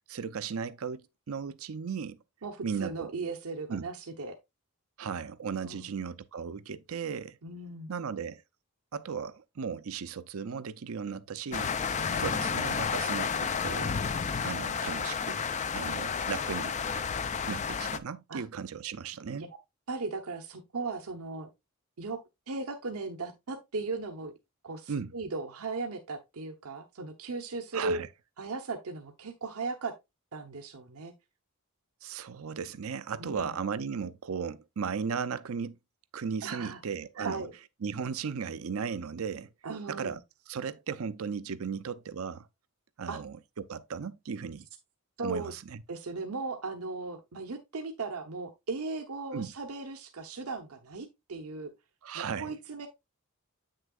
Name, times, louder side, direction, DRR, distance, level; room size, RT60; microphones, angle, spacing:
voice 1, 0.1-2.2 2.6-3.1 3.7-3.8 5.0-7.4 7.9-8.4 8.9-11.7 12.2-14.0 14.4-15.4 15.7-16.8 17.5-19.5 24.9-25.1 27.7-28.1 32.0-35.8 36.1-37.4 37.8-39.5 39.9-40.2 40.5-42.5 43.0-44.7 45.2-45.8 49.3-49.5 52.0-52.5, right 6 dB, 70° right, 0.5 m, -36 dB
voice 2, 2.4-4.3 5.6-5.9 7.4-7.9 11.9-12.5 18.3-18.4 19.4-19.5 19.9-21.5 22.0-22.2 22.5-24.3 24.6-28.0 28.4-29.9 30.3-31.1 33.2-33.5 36.4-36.8 37.2-37.5 39.6-40.2 43.1-43.2 45.2-45.5 45.9-51.7 52.1-52.9, right 3 dB, 85° right, 0.9 m, -37 dB
sound 1, 11.5-18.0, left 6 dB, 35° left, 0.4 m, -31 dB
8.3 x 6.5 x 2.3 m
head